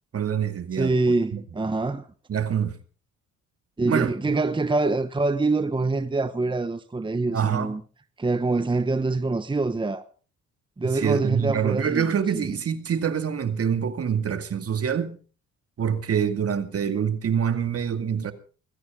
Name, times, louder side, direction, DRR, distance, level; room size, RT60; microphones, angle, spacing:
voice 1, 0.1-0.9 1.3-1.4 2.3-2.8 3.9-4.3 7.3-7.7 10.8-15.2 15.8-18.3, right 7 dB, 50° right, 2.3 m, -25 dB
voice 2, 0.7-2.1 3.8-7.8 8.2-10.0 10.8-12.1 12.3-12.5, right 3 dB, 15° right, 1.1 m, -25 dB
20.5 x 15.5 x 3.7 m
cardioid pair, 90°, 30 cm